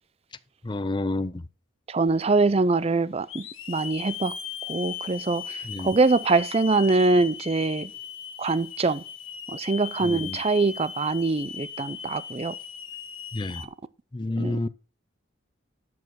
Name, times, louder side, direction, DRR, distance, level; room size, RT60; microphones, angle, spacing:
voice 1, 0.6-1.5 5.6-5.9 10.0-10.4 13.3-13.7 14.1-14.7, left 2 dB, 25° left, 0.5 m, -29 dB
voice 2, 1.9-4.3 4.7-7.9 8.4-9.0 9.5-12.5 14.4-14.6, right 3 dB, 30° right, 0.5 m, -24 dB
Hiss / Alarm, 2.2-2.3 3.3-13.7, left 8 dB, 85° left, 1.5 m, -38 dB
12.5 x 4.8 x 6.2 m
head